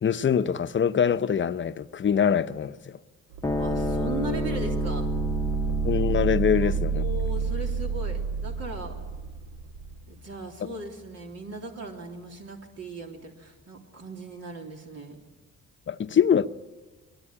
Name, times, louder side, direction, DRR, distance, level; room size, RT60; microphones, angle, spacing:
voice 1, 0.0-3.0 5.8-7.1 15.9-16.5, left 8 dB, 40° left, 0.9 m, -24 dB
sound 1, 3.3-10.0, right 6 dB, 85° right, 0.8 m, -29 dB
sound 2, 3.4-10.1, left 2 dB, 10° left, 1.0 m, -33 dB
voice 2, 3.6-5.1 6.6-9.0 10.1-15.2, right 2 dB, 55° right, 3.5 m, -38 dB
23.0 x 19.0 x 10.0 m
cardioid pair, 90°, 30 cm